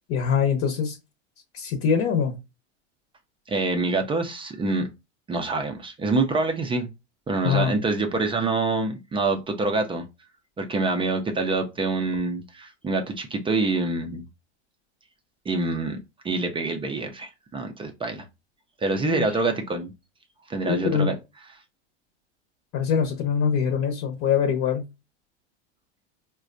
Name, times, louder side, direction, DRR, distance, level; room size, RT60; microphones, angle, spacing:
voice 1, 0.1-1.0 1.5-2.4 7.4-7.7 19.0-19.4 20.6-21.1 22.7-24.8, left 7 dB, 45° left, 0.9 m, -23 dB
voice 2, 3.5-4.9 5.3-6.9 7.3-10.0 10.6-14.2 15.5-16.0 16.2-18.2 18.8-19.9 20.5-21.1, right 3 dB, 15° right, 0.4 m, -26 dB
4.8 x 2.2 x 2.5 m
hypercardioid pair, 100°, 35 cm